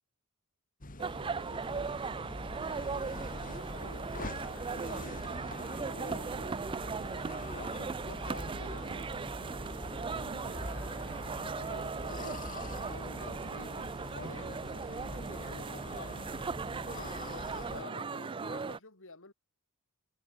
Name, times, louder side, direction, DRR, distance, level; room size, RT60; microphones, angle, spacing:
sound 1, 0.8-17.8, left 1 dB, 40° left, 2.6 m, -44 dB
voice 1, 1.0-1.9 2.6-5.2 5.6-9.1 9.9-16.2 16.8-19.3, left 3 dB, 60° left, 4.8 m, -50 dB
sound 2, 1.0-18.8, right 5 dB, 25° right, 0.4 m, -38 dB
head